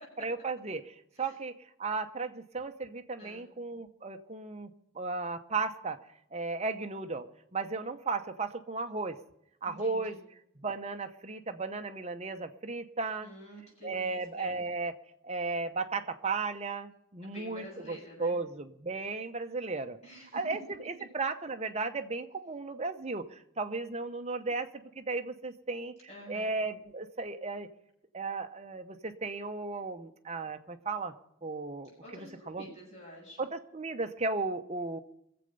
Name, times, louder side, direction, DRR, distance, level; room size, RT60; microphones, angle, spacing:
voice 1, 0.2-1.5 1.8-4.7 4.9-6.0 6.3-7.2 7.5-9.2 9.6-10.2 10.6-13.3 13.8-15.0 15.2-20.0 20.3-24.7 25.0-25.9 26.3-27.7 28.1-31.1 31.4-32.7 33.4-35.0, right 3 dB, 30° right, 7 dB, 0.8 m, -35 dB
voice 2, 9.6-10.2 13.2-14.5 17.2-18.4 20.0-20.4 24.4-24.6 26.1-26.5 32.0-33.4, equal, 30° left, -4 dB, 7.6 m, -49 dB
23.0 x 7.8 x 5.4 m, 0.77 s
head